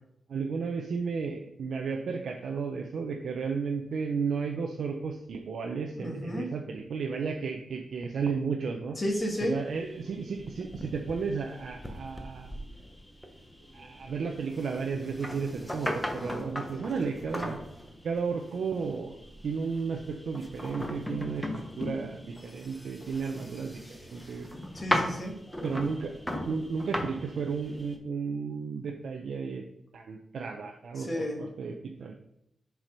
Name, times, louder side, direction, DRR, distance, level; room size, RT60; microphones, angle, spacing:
voice 1, 0.3-9.0 9.4-12.6 13.7-17.6 18.0-19.2 19.4-24.5 25.6-29.6 29.9-31.1 31.4-32.2, right 5 dB, 70° right, 3 dB, 0.7 m, -33 dB
voice 2, 6.0-6.5 9.0-9.6 24.7-25.4 31.0-31.4, equal, 30° left, 2 dB, 1.8 m, -32 dB
sound 1, 9.0-28.0, left 1 dB, 5° left, 1.1 m, -38 dB
7.5 x 4.8 x 5.3 m, 0.77 s
wide cardioid pair, 115°, 0 cm